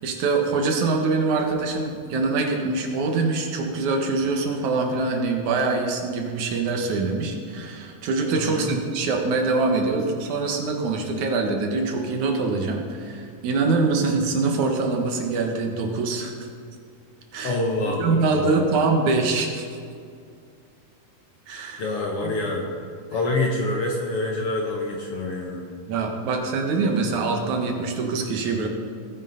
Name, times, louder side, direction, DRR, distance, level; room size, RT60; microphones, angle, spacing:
voice 1, 0.0-16.3 17.3-17.6 17.8-19.7 21.5-21.8 22.2-22.4 25.9-28.7, right 3 dB, 65° right, 2 dB, 2.7 m, -24 dB
voice 2, 8.3-8.8 17.4-18.8 21.8-22.6 23.1-25.7, left 2 dB, 65° left, 0 dB, 1.6 m, -26 dB
19.5 x 9.9 x 4.0 m, 2.3 s
omnidirectional pair, 3.9 m